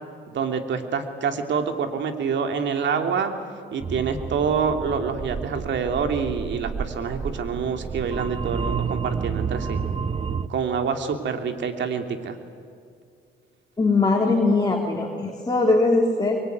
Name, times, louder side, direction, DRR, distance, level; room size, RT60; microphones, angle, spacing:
voice 1, 0.3-3.3 3.7-9.8 10.5-12.4, right 6 dB, 65° right, 6 dB, 2.8 m, -26 dB
sound 1, 3.8-10.5, right 6 dB, 30° right, 0.8 m, -30 dB
voice 2, 13.8-16.4, left 3 dB, 20° left, 0 dB, 3.5 m, -21 dB
23.5 x 23.0 x 9.4 m, 2.4 s
cardioid pair, 90°, 20 cm